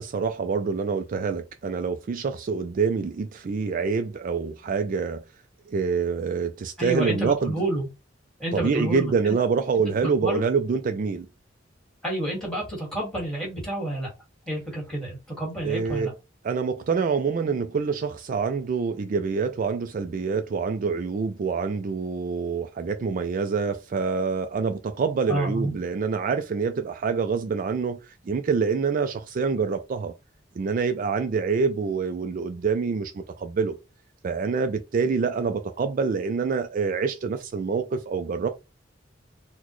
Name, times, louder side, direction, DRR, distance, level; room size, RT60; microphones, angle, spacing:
voice 1, 0.0-5.2 5.7-7.6 8.5-11.3 15.6-16.1 16.4-30.1 30.6-33.8 34.2-38.5, right 5 dB, 45° right, 0.3 m, -26 dB
voice 2, 6.8-7.9 8.4-9.4 10.0-10.4 12.0-14.1 14.5-16.1 25.3-25.7, right 1 dB, 5° left, 1.9 m, -29 dB
4.0 x 2.1 x 3.0 m
head